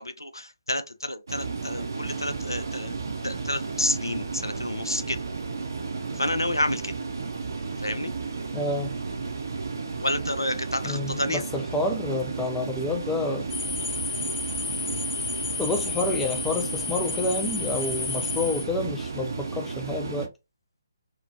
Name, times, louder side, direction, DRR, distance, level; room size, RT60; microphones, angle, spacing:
voice 1, 0.0-2.9 3.2-5.2 6.1-6.9 7.8-8.1 10.0-11.4, left 1 dB, 85° left, 0.4 m, -29 dB
sound 1, 1.3-20.3, right 4 dB, 60° right, 0.5 m, -33 dB
voice 2, 8.5-9.0 10.8-13.5 15.6-20.3, left 2 dB, 5° left, 0.3 m, -29 dB
sound 2, 13.5-18.6, left 5 dB, 40° left, 0.7 m, -32 dB
2.9 x 2.1 x 2.6 m
figure-of-eight pair, 140°, 2 cm